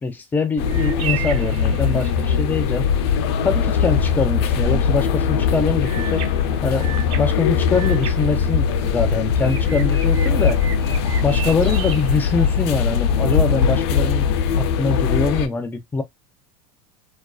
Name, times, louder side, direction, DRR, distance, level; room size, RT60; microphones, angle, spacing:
voice 1, 0.0-2.9 3.4-6.2 6.6-10.6 11.2-14.3 14.6-16.0, left 4 dB, 15° left, 0.4 m, -23 dB
sound 1, 0.6-15.5, left 6 dB, 80° left, 0.4 m, -20 dB
sound 2, 0.7-2.4 5.8-9.0 9.4-12.9, right 9 dB, 45° right, 0.6 m, -35 dB
2.4 x 2.2 x 2.3 m
supercardioid pair, 145°, 14 cm